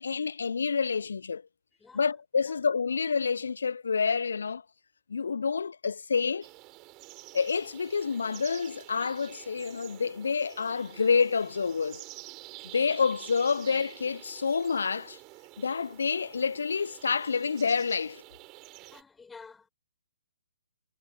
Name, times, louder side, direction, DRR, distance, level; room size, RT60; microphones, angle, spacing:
voice 1, 0.0-1.4 1.9-4.6 5.1-6.5 7.3-12.0 12.7-15.2 15.6-18.2, left 5 dB, 65° left, 0.4 m, -28 dB
voice 2, 1.8-2.1 2.4-2.6 18.8-19.7, left 5 dB, 10° left, 6.6 m, -51 dB
sound 1, 6.4-19.0, right 22 dB, 25° right, 3.6 m, -49 dB
figure-of-eight pair, 130°, 0 cm